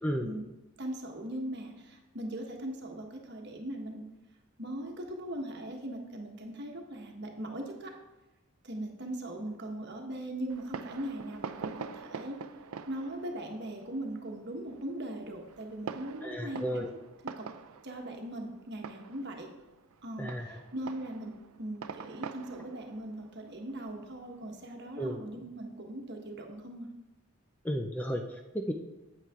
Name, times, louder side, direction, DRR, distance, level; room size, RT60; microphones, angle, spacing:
voice 1, 0.8-4.0 4.6-7.9 8.6-12.4 12.9-16.8 17.2-17.5 17.8-19.5 20.0-21.3 21.6-26.9, right 1 dB, 50° right, 2 dB, 1.4 m, -39 dB
Fireworks, 10.5-24.7, right 6 dB, 75° right, 0.5 m, -45 dB
voice 2, 16.2-16.9 20.2-20.6 25.0-25.2 27.6-28.7, equal, 5° left, 3 dB, 0.5 m, -33 dB
9.1 x 8.7 x 3.7 m, 1.0 s
head